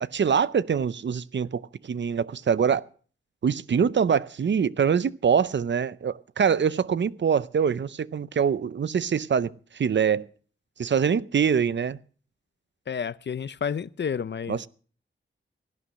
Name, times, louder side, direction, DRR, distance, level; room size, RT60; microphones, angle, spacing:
voice 1, 0.0-2.9 3.4-10.3 10.8-12.0 14.5-14.7, right 7 dB, 65° right, 0.6 m, -24 dB
voice 2, 12.9-14.7, left 7 dB, 60° left, 0.6 m, -30 dB
15.5 x 11.5 x 6.2 m
wide cardioid pair, 75°, 20 cm